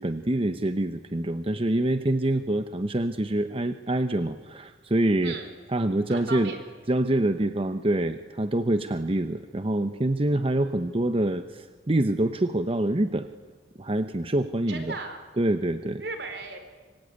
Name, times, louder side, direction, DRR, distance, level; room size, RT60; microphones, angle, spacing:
voice 1, 0.0-5.3 5.7-6.5 6.9-13.3 13.8-14.9 15.4-16.0, right 1 dB, 35° right, 9 dB, 0.9 m, -26 dB
voice 2, 6.1-6.6 14.7-15.2 16.0-16.6, right 3 dB, 70° right, 7 dB, 4.5 m, -36 dB
25.5 x 24.5 x 9.5 m, 1.4 s
head